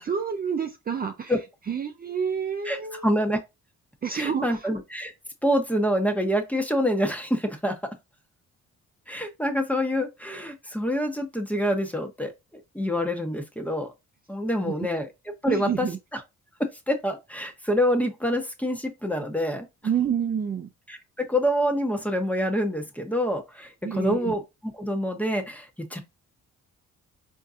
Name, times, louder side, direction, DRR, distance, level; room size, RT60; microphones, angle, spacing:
voice 1, 0.0-1.3 1.7-3.1 4.0-4.7 14.6-14.9 15.5-16.0 19.8-20.7 23.8-24.4, right 7 dB, 30° right, 0.5 m, -28 dB
voice 2, 2.6-3.4 4.1-5.1 5.4-7.8 9.1-12.3 12.7-13.9 14.3-15.1 15.4-15.9 16.1-16.2 16.6-19.7 20.9-26.0, equal, 5° left, 0.8 m, -26 dB
4.4 x 2.7 x 2.5 m
cardioid pair, 90°, 30 cm